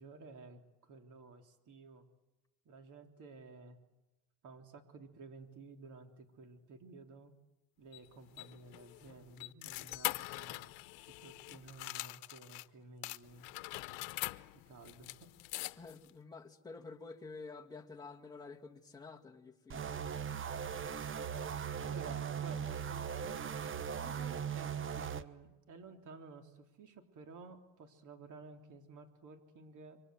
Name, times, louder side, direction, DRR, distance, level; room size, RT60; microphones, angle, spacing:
voice 1, 0.0-2.1 2.7-3.8 4.4-7.3 7.8-10.7 11.0-13.5 14.5-15.3 21.8-30.0, right 4 dB, 50° right, 5 dB, 3.6 m, -54 dB
sound 1, 7.9-12.7 13.0-16.1, left 22 dB, 90° left, 1.0 m, -43 dB
voice 2, 15.8-19.9, left 4 dB, 10° left, 0 dB, 2.2 m, -50 dB
sound 2, 19.7-25.2, right 7 dB, 30° right, 1.2 m, -39 dB
26.5 x 24.0 x 7.9 m, 1.0 s
cardioid pair, 125°, 39 cm